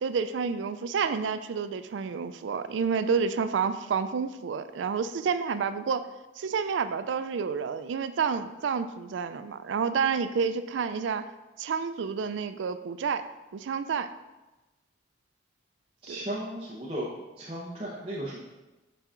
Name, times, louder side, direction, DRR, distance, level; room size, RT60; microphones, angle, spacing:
voice 1, 0.0-6.1 6.4-11.3 11.6-13.3 13.5-14.1 16.1-16.2, right 6 dB, 80° right, 11 dB, 0.4 m, -29 dB
voice 2, 16.0-17.1 17.4-18.4, right 1 dB, 30° right, -7 dB, 0.8 m, -35 dB
7.5 x 5.5 x 2.5 m, 1.1 s
head